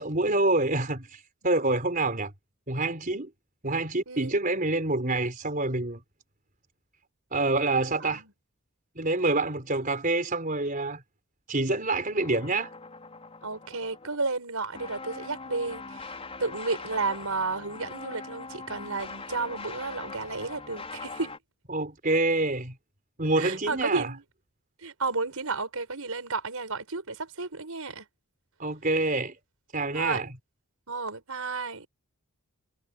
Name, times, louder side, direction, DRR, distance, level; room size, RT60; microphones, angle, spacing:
voice 1, 0.0-2.3 2.7-3.3 3.6-6.0 7.3-8.2 9.0-11.0 11.5-12.7 21.7-22.7 23.2-24.1 28.6-29.4 29.7-30.3, right 2 dB, 40° right, 4.5 m, -27 dB
sound 1, 12.2-14.2 14.8-21.4, left 4 dB, 25° left, 5.6 m, -42 dB
voice 2, 13.4-16.1 16.4-21.3 23.4-24.2 24.8-28.0 29.9-30.2 30.9-31.9, right 3 dB, 85° right, 5.2 m, -32 dB
head